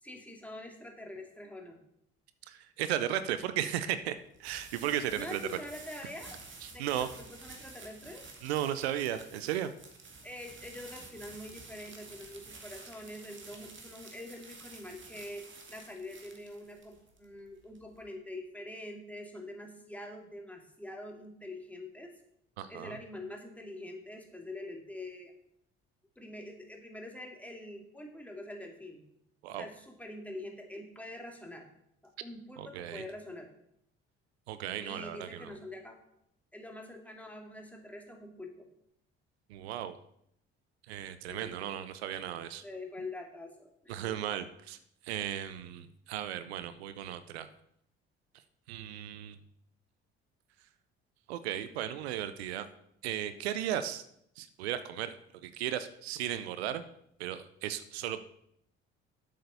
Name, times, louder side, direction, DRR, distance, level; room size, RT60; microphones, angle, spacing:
voice 1, 0.0-1.8 5.2-6.4 6.7-8.3 10.2-22.2 22.7-25.3 26.2-29.0 29.6-31.7 32.2-33.5 34.8-36.0 36.5-38.7 41.3-41.7 42.6-44.3, left 1 dB, 5° left, 2 dB, 2.4 m, -45 dB
voice 2, 2.5-5.4 6.6-7.1 8.4-9.7 22.6-23.0 29.4-29.7 32.6-33.0 34.5-35.5 39.5-40.0 40.9-42.6 43.9-44.8 45.0-47.5 48.7-49.4 51.3-52.7 53.0-54.0 54.4-55.2 55.4-56.8 57.2-58.2, right 11 dB, 80° right, 12 dB, 0.6 m, -35 dB
sound 1, 3.4-18.1, right 3 dB, 40° right, 2.3 m, -51 dB
8.0 x 6.5 x 6.8 m, 0.74 s
hypercardioid pair, 50°, 31 cm